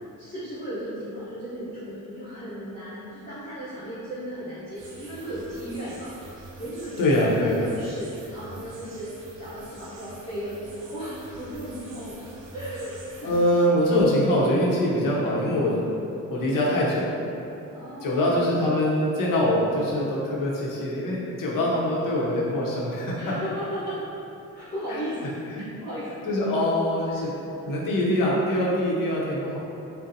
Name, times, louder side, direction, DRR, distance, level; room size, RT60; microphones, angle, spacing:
voice 1, 0.2-6.1 6.6-13.3 17.7-18.6 23.2-24.0 24.5-26.6, equal, 20° left, -14 dB, 0.8 m, -36 dB
sound 1, 4.8-13.4, right 2 dB, 70° right, 0.6 m, -45 dB
voice 2, 7.0-7.6 13.2-15.8 16.3-17.2 18.0-23.4 24.9-25.0 25.5-25.6 26.3-27.3 27.6-29.6, left 1 dB, 75° left, -5 dB, 0.7 m, -23 dB
3.8 x 2.0 x 2.6 m, 2.9 s
cardioid pair, 120°, 33 cm